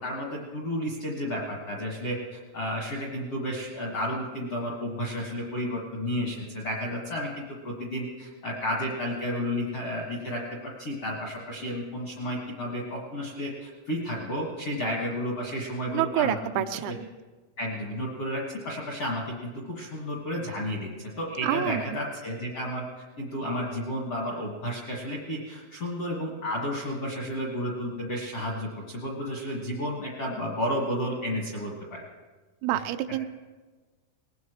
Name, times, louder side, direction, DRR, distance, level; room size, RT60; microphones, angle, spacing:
voice 1, 0.0-10.4 10.8-16.9 17.6-22.8 23.2-32.0 32.7-32.8, equal, 65° left, -3 dB, 1.5 m, -32 dB
voice 2, 15.9-17.1 21.4-21.8 32.6-33.3, right 13 dB, 85° right, 9 dB, 3.3 m, -27 dB
20.0 x 18.0 x 3.1 m, 1.3 s
omnidirectional pair, 5.9 m